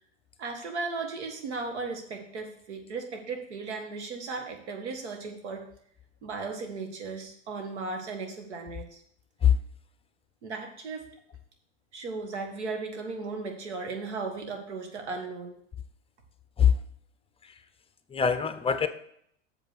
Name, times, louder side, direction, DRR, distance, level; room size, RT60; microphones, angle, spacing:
voice 1, 0.4-5.7 6.2-9.0 10.4-11.1 11.9-15.6, right 4 dB, 85° right, 3 dB, 1.9 m, -36 dB
voice 2, 18.1-18.9, left 8 dB, 15° left, 10 dB, 0.7 m, -22 dB
7.1 x 5.4 x 6.5 m, 0.66 s
hypercardioid pair, 100°, 33 cm